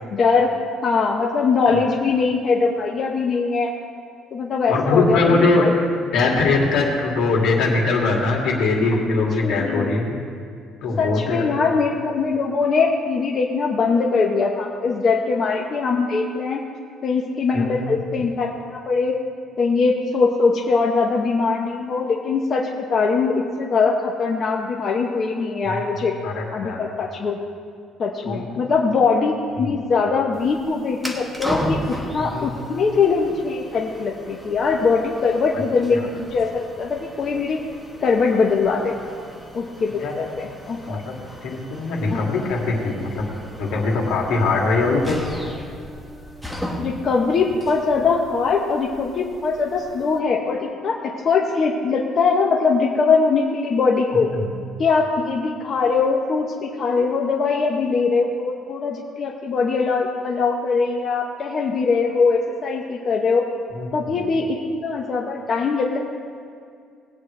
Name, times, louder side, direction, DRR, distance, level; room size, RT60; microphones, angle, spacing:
voice 1, 0.1-0.5 0.8-3.7 4.3-5.7 9.4-9.9 11.0-16.6 17.0-19.1 19.6-26.1 26.5-27.4 28.0-37.6 38.0-38.9 39.5-41.0 42.1-42.5 46.8-54.3 54.8-63.4 63.9-66.0, left 4 dB, 35° left, -1 dB, 0.9 m, -21 dB
voice 2, 4.7-5.9 6.1-10.1 10.8-11.4 17.5-17.9 25.7-26.0 26.2-26.8 28.2-28.5 29.6-29.7 32.2-32.5 35.9-36.1 39.9-40.1 40.9-41.1 41.4-43.3 43.6-45.2 54.1-54.5 63.7-64.2, left 3 dB, 75° left, -2 dB, 2.5 m, -21 dB
sound 1, 30.3-50.2, equal, ahead, 1.2 m, -36 dB
20.0 x 8.9 x 3.3 m, 2.3 s
cardioid pair, 145°, 0 cm